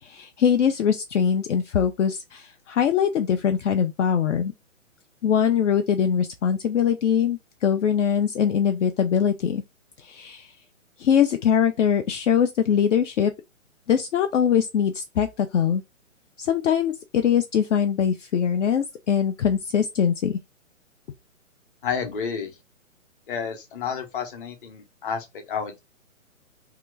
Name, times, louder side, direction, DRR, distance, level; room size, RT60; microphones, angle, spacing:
voice 1, 0.0-4.5 5.2-9.6 10.0-10.5 11.0-13.3 13.9-15.8 16.4-20.4, left 8 dB, 65° left, 0.5 m, -22 dB
voice 2, 21.8-22.5 23.3-25.8, left 6 dB, 40° left, 0.8 m, -30 dB
2.8 x 2.3 x 3.2 m
hypercardioid pair, 145°, 40 cm